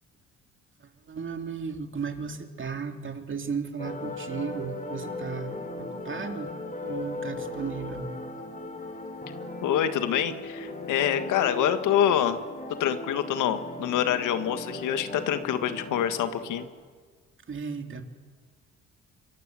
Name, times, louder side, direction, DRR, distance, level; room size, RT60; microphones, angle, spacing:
voice 1, 0.8-6.5 6.8-8.1 17.5-18.0, right 5 dB, 40° right, 5 dB, 2.8 m, -35 dB
sound 1, 3.8-16.7, left 2 dB, 25° left, 4.6 m, -37 dB
voice 2, 9.6-12.4 12.8-16.6, left 10 dB, 85° left, 10 dB, 1.7 m, -26 dB
25.0 x 24.0 x 7.7 m, 1.5 s
cardioid pair, 90°, 30 cm